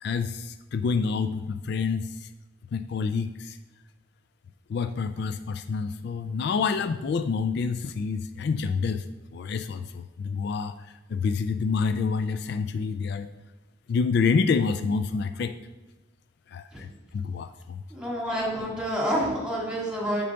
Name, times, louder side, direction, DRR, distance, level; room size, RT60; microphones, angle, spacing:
voice 1, 0.0-2.3 2.7-3.6 4.7-9.1 9.3-13.3 13.9-15.5 16.5-17.8, left 5 dB, 60° left, 10 dB, 0.3 m, -28 dB
voice 2, 17.9-20.3, equal, 5° right, -4 dB, 2.2 m, -28 dB
8.5 x 3.9 x 5.6 m, 1.2 s
head